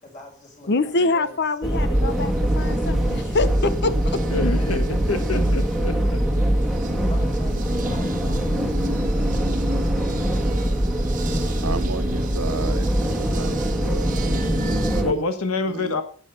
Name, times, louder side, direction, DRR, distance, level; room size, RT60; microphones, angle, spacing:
voice 1, 0.0-2.3 7.1-9.3 9.9-10.4 14.1-14.4, left 2 dB, 35° left, 5.9 m, -45 dB
voice 2, 0.7-4.2, left 3 dB, 50° left, 0.8 m, -25 dB
sound 1, 1.6-15.1, right 1 dB, ahead, 1.7 m, -24 dB
sound 2, 1.9-15.0, equal, 35° right, 1.5 m, -27 dB
voice 3, 4.3-5.9 15.0-16.0, left 3 dB, 70° left, 1.2 m, -26 dB
voice 4, 11.6-15.2 15.7-16.0, right 4 dB, 75° right, 1.0 m, -34 dB
11.5 x 9.2 x 5.6 m
head